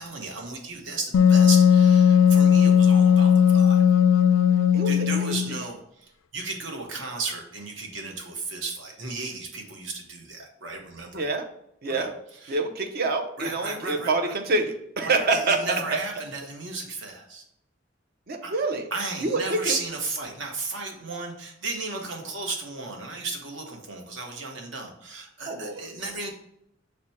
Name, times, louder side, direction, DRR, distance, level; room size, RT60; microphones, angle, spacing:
voice 1, 0.0-3.8 4.9-11.2 11.9-12.1 12.4-12.6 13.4-14.3 15.0-17.4 18.4-18.5 18.9-26.3, right 3 dB, 70° right, 2 dB, 1.0 m, -34 dB
Wind instrument woodwind instrument, 1.1-5.6, left 8 dB, 90° left, 0.3 m, -17 dB
voice 2, 4.7-5.4 11.1-11.5 11.8-12.1 12.5-15.6 18.3-18.8 19.2-19.8 25.5-25.9, right 3 dB, 55° right, 5 dB, 0.6 m, -26 dB
6.0 x 2.1 x 4.1 m, 0.75 s
head